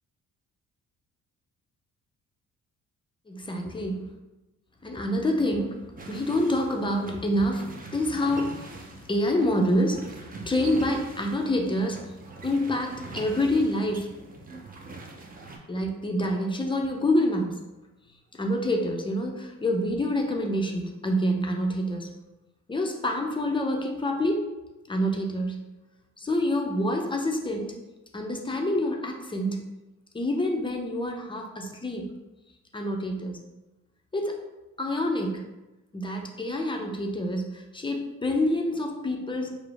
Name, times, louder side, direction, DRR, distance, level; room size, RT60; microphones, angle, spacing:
voice 1, 3.3-4.1 4.8-14.1 15.7-17.6 18.3-22.1 22.7-24.5 24.9-25.6 26.2-27.7 28.1-29.6 30.1-32.1 32.7-33.4 34.1-34.4 34.8-35.5 35.9-39.5, left 1 dB, 15° left, 2 dB, 0.6 m, -27 dB
sound 1, 6.0-15.6, right 3 dB, 30° right, 0.7 m, -43 dB
5.0 x 2.0 x 3.4 m, 1.0 s
cardioid pair, 90°, 30 cm